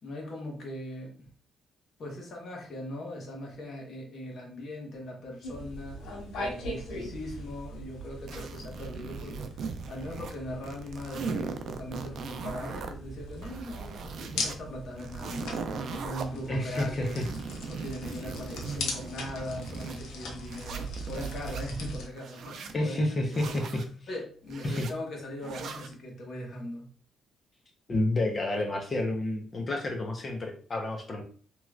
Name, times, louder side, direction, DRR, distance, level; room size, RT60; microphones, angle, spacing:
voice 1, 0.0-1.3 2.0-17.1 17.7-23.6 24.1-26.8, left 1 dB, 55° left, -1 dB, 1.2 m, -40 dB
sound 1, 5.4-22.1, equal, 80° left, 0.8 m, -40 dB
sound 2, 8.3-10.4 10.6-12.9 13.3-14.6 15.0-16.2 16.7-20.0 20.5-21.6 22.1-22.8 23.3-23.9 24.5-24.9 25.4-25.9, right 5 dB, 65° right, 0.4 m, -39 dB
voice 2, 16.5-17.3 22.7-23.8 24.6-24.9 27.9-31.2, left 1 dB, 35° left, 3 dB, 0.8 m, -30 dB
3.0 x 3.0 x 2.4 m, 0.43 s
cardioid pair, 90°, 0 cm